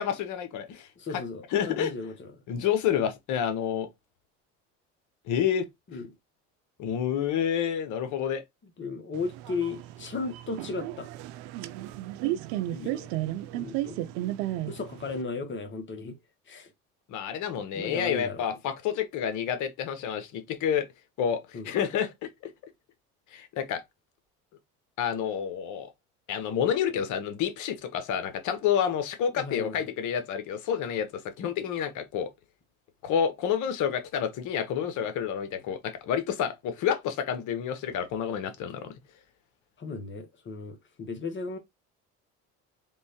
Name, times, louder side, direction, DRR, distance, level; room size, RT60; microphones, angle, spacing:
voice 1, 0.0-0.9 1.5-1.9 2.5-3.9 5.3-5.6 6.8-8.4 17.1-20.8 21.2-22.5 23.3-23.8 25.0-25.9 26.3-32.3 33.0-38.9, left 8 dB, 60° left, 1.1 m, -29 dB
voice 2, 1.0-2.4 5.9-6.1 8.6-11.1 12.6-13.1 13.5-14.0 14.7-16.2 16.5-16.7 17.7-18.6 21.5-21.7 29.3-29.8 39.8-41.6, left 4 dB, 35° left, 1.3 m, -36 dB
sound 1, 9.1-15.2, right 15 dB, 75° right, 0.5 m, -34 dB
3.6 x 3.1 x 2.9 m
supercardioid pair, 85°, 33 cm